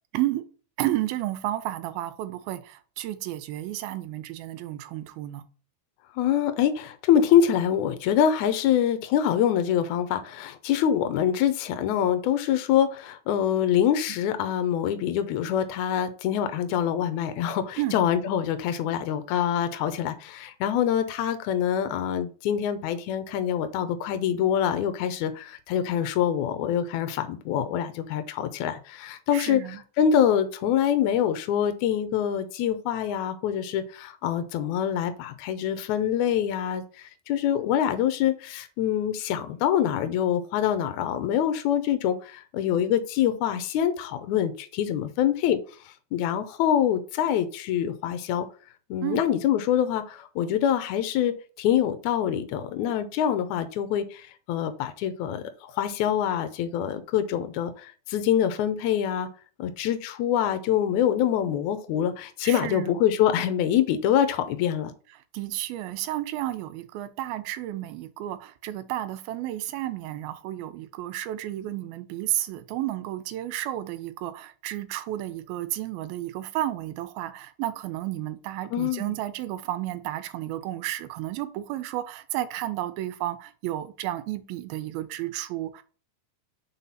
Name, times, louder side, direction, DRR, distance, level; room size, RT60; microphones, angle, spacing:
voice 1, 0.8-5.4 17.8-18.0 29.3-29.8 49.0-49.2 62.4-63.0 65.3-85.8, right 14 dB, 80° right, 2.5 m, -32 dB
voice 2, 6.2-29.6 30.0-45.6 46.1-48.5 48.9-55.4 55.7-57.7 58.1-59.3 59.6-64.9 78.7-79.1, left 9 dB, 85° left, 1.7 m, -25 dB
5.9 x 4.1 x 5.6 m
omnidirectional pair, 4.4 m